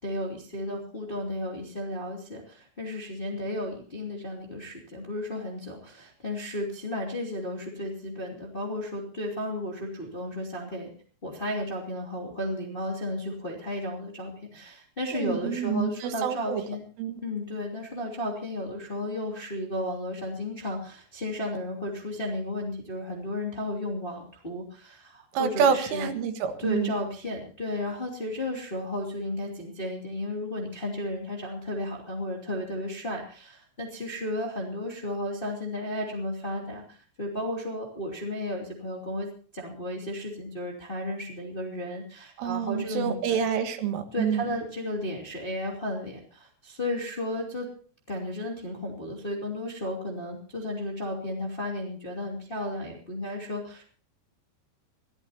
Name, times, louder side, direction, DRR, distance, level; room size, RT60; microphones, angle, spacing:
voice 1, 0.0-10.9 11.2-16.8 17.2-26.1 26.6-39.3 39.5-43.4 44.1-47.7 48.1-53.9, left 1 dB, 20° left, -1 dB, 1.6 m, -33 dB
voice 2, 15.1-16.6 17.0-17.2 25.3-26.9 42.4-44.5, right 7 dB, 80° right, 7 dB, 4.0 m, -27 dB
23.5 x 15.5 x 2.9 m, 0.43 s
omnidirectional pair, 5.7 m